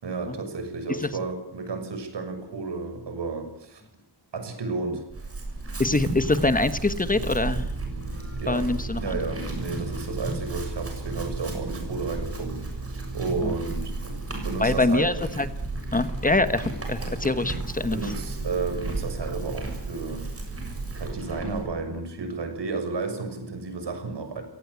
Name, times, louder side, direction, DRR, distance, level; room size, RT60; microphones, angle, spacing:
voice 1, 0.0-3.8 4.3-5.0 8.4-8.7 9.0-12.6 13.1-14.1 14.4-15.1 17.9-20.2 21.0-24.4, right 4 dB, 80° right, 7 dB, 6.9 m, -32 dB
Chewing mastication / Livestock farm animals working animals, 5.1-21.7, right 2 dB, 35° right, 7.0 m, -33 dB
voice 2, 5.8-7.6 8.5-9.2 13.4-13.5 14.6-15.5 15.9-18.0, left 2 dB, 20° left, 11 dB, 1.2 m, -24 dB
30.0 x 18.0 x 8.3 m, 0.75 s
wide cardioid pair, 165°, 41 cm